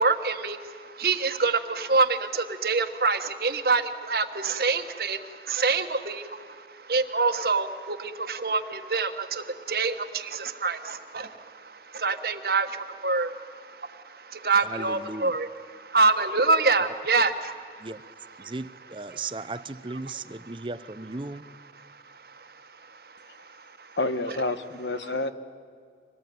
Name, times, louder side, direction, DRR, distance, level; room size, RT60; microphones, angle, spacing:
voice 1, 0.0-18.5 19.1-19.3 20.1-20.7 21.7-24.0, right 3 dB, 60° right, 8 dB, 1.3 m, -27 dB
voice 2, 14.6-15.3 17.8-18.0 18.4-21.4, right 3 dB, 30° right, 14 dB, 0.7 m, -36 dB
voice 3, 24.0-25.3, left 2 dB, 90° left, 10 dB, 1.4 m, -28 dB
25.5 x 20.0 x 9.3 m, 2.1 s
head